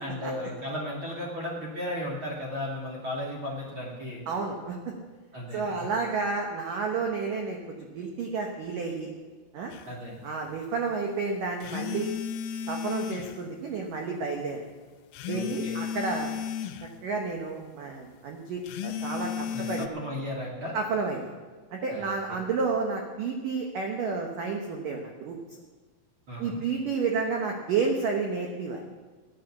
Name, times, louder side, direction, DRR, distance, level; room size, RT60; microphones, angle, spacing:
voice 1, 0.0-4.2 5.3-5.6 9.9-10.2 15.3-15.8 19.5-20.7 21.9-22.4 26.3-26.6, left 1 dB, 45° right, -4 dB, 1.7 m, -35 dB
voice 2, 4.3-4.8 5.5-9.1 9.5-9.7 10.2-12.1 12.7-14.7 15.3-16.3 17.0-19.9 20.7-21.3 21.7-25.4 26.4-28.8, right 4 dB, 85° right, 2 dB, 1.9 m, -31 dB
sound 1, 9.7-9.9 11.6-13.4 15.1-16.9 18.7-19.9, left 8 dB, 85° left, 3.5 m, -34 dB
15.5 x 10.0 x 7.0 m, 1.4 s
omnidirectional pair, 5.9 m